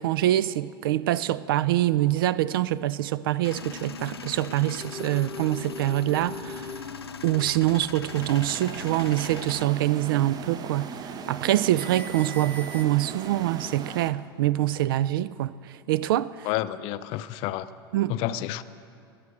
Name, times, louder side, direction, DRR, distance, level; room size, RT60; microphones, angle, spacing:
voice 1, 0.0-6.7 7.2-10.9 11.3-15.5 15.9-16.5 17.9-18.1, right 14 dB, 60° right, 0.4 m, -25 dB
Male speech man speaking / Vehicle / Engine starting, 3.4-9.6, left 6 dB, 80° left, 0.7 m, -40 dB
sound 1, 4.8-7.6 7.9-8.2 8.7-8.9 9.4-9.5 11.3-11.5 11.8-13.0, left 1 dB, 15° left, 0.8 m, -42 dB
sound 2, 8.1-14.1, right 6 dB, 30° right, 0.8 m, -39 dB
voice 2, 16.4-17.7 18.1-18.6, left 14 dB, 45° left, 0.5 m, -29 dB
21.5 x 7.6 x 6.2 m
figure-of-eight pair, 80°, 13 cm